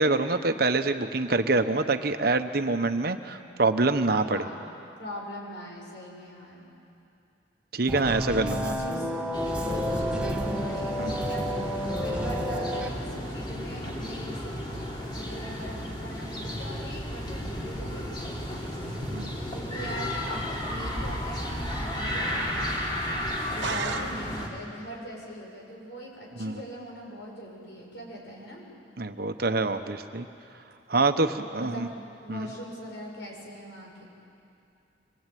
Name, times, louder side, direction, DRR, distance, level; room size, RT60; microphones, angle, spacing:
voice 1, 0.0-4.4 7.7-8.7 11.0-11.3 19.1-19.4 26.4-26.6 29.0-30.3 30.9-31.9 32.3-32.5, right 3 dB, 55° right, 8 dB, 1.1 m, -26 dB
voice 2, 4.3-4.6 5.0-6.7 8.5-9.1 9.6-11.5 12.0-14.5 14.9-19.0 19.5-22.8 23.5-28.6 31.6-31.9 32.2-34.0, equal, 75° left, -2 dB, 6.9 m, -41 dB
sound 1, 7.9-12.9, equal, 5° right, 1.4 m, -30 dB
sound 2, 9.3-24.5, equal, 25° left, 3.3 m, -33 dB
sound 3, 23.6-24.7, right 5 dB, 80° right, 1.2 m, -35 dB
25.0 x 21.5 x 9.3 m, 2.6 s
head